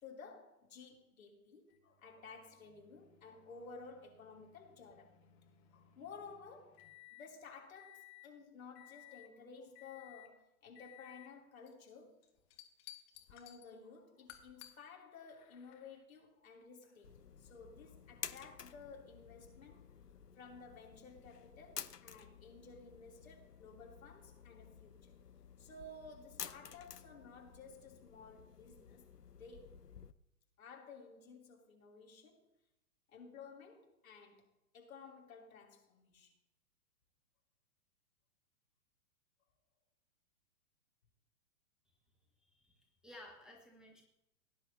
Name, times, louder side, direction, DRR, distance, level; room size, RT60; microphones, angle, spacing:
voice 1, 0.0-5.3 5.7-6.8 7.1-12.2 13.3-19.9 20.4-25.1 25.6-29.9 30.6-32.5 33.1-34.5 34.7-36.3, left 4 dB, 60° left, 3.1 m, -55 dB
sound 1, 1.7-7.3 7.7-8.3 8.7-9.3 9.7-10.3 10.7-11.3 11.7-11.9 12.2-13.7 14.3-14.7 15.2-16.0 16.8-16.9 18.3-18.4, left 13 dB, 30° left, 1.5 m, -59 dB
sound 2, 17.0-30.1, left 7 dB, 90° left, 0.7 m, -52 dB
voice 2, 42.4-44.0, left 1 dB, ahead, 1.2 m, -56 dB
18.0 x 10.0 x 2.8 m
figure-of-eight pair, 110°, 46 cm